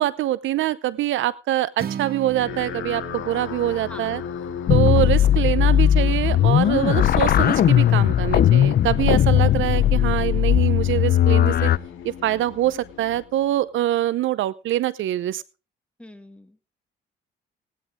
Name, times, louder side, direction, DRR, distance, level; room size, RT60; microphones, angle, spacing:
voice 1, 0.0-4.2 4.7-11.7 12.0-15.4, right 13 dB, 80° right, 18 dB, 0.8 m, -24 dB
Acoustic guitar, 1.8-6.0, right 8 dB, 50° right, 0.9 m, -38 dB
sound 1, 2.3-13.8, left 8 dB, 80° left, 2.2 m, -36 dB
voice 2, 3.9-4.3 9.2-9.7 16.0-16.8, left 1 dB, 5° left, 8 dB, 2.0 m, -45 dB
sound 2, 4.7-11.8, left 11 dB, 50° left, 0.5 m, -18 dB
18.0 x 10.5 x 3.6 m, 0.33 s
cardioid pair, 90°, 20 cm